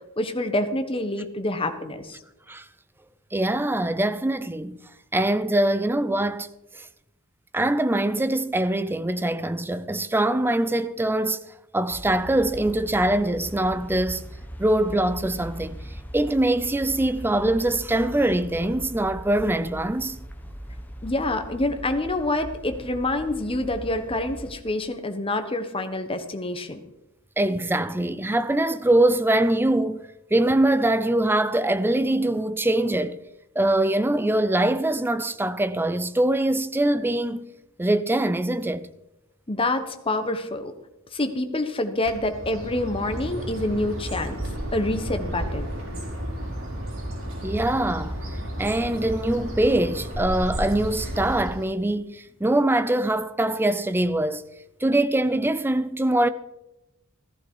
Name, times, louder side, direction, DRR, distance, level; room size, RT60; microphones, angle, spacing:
voice 1, 0.2-2.2 21.0-26.8 39.5-40.7 41.1-44.4 44.7-45.7, left 2 dB, 25° left, 1.3 m, -27 dB
voice 2, 3.3-4.8 5.1-6.5 6.7-6.9 7.5-11.4 11.7-14.2 14.6-15.8 16.1-20.2 27.4-30.0 30.3-33.2 33.6-37.5 37.8-38.9 47.4-54.5 54.8-56.3, right 1 dB, 10° right, 0.5 m, -23 dB
sound 1, 11.9-24.5, equal, 10° left, 1.3 m, -40 dB
Bird, 42.0-51.7, equal, 90° right, 5.5 m, -32 dB
14.5 x 14.0 x 4.8 m
head